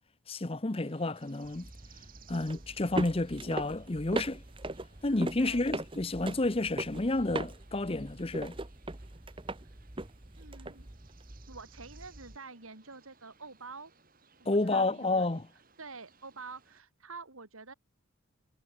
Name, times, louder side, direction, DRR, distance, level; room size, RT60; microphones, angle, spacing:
voice 1, 0.3-1.7 2.3-4.4 5.0-8.6 14.4-15.5, left 2 dB, 25° left, 0.8 m, -30 dB
sound 1, 0.7-16.8, right 6 dB, 40° right, 7.3 m, -63 dB
sound 2, 1.4-12.4, right 2 dB, 25° right, 1.1 m, -40 dB
voice 2, 10.4-10.9 11.5-13.9 14.4-15.3 15.8-17.7, right 4 dB, 80° right, 3.4 m, -47 dB
head